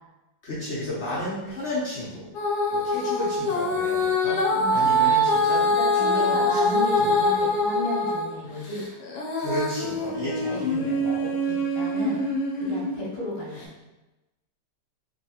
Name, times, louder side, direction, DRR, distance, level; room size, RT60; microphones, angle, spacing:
voice 1, 0.4-2.3 2.7-4.4 4.7-5.6 6.0-7.1 9.3-11.2, left 1 dB, 50° left, -7 dB, 0.9 m, -32 dB
Female singing, 2.3-8.3 8.7-13.0 13.6-13.7, left 1 dB, 70° left, 1.1 m, -24 dB
voice 2, 4.5-4.9 5.7-8.8 10.2-10.6 11.5-12.2 12.5-13.7, left 1 dB, 35° left, -6 dB, 0.5 m, -33 dB
3.1 x 2.7 x 2.8 m, 1.0 s
omnidirectional pair, 1.8 m